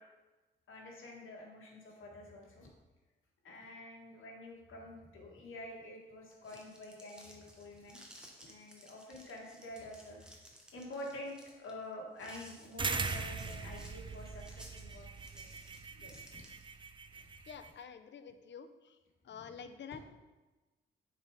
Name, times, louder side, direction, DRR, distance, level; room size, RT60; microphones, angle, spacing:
voice 1, 0.7-2.7 3.4-8.0 8.4-10.4 10.7-15.6 16.0-16.4 17.1-17.2 19.3-19.6, left 1 dB, 80° left, -2 dB, 1.7 m, -48 dB
sound 1, 6.2-16.8, equal, 5° right, 1.2 m, -57 dB
sound 2, 12.8-17.7, right 4 dB, 25° right, 0.4 m, -40 dB
voice 2, 17.5-19.0 19.2-20.0, left 7 dB, 60° left, 10 dB, 0.6 m, -48 dB
6.8 x 4.2 x 4.8 m, 1.2 s
cardioid pair, 85°, 21 cm